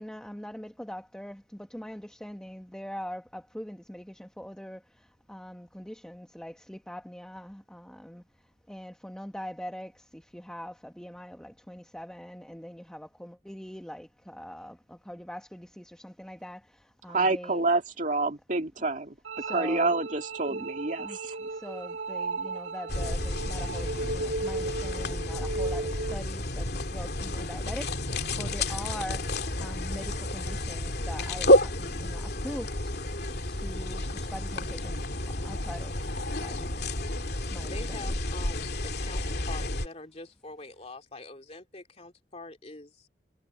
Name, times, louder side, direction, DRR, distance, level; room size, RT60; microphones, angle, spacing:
voice 1, 0.0-17.6 19.4-19.9 20.5-20.7 21.0-33.0 33.5-36.9 37.5-38.1, equal, 5° left, 1.3 m, -43 dB
voice 2, 17.1-19.2 19.5-21.4, right 3 dB, 45° right, 2.3 m, -28 dB
sound 1, 19.2-26.2, right 3 dB, 80° right, 2.7 m, -35 dB
sound 2, 22.9-39.9, left 1 dB, 60° left, 2.8 m, -30 dB
voice 3, 37.6-43.1, left 2 dB, 35° left, 2.6 m, -44 dB
head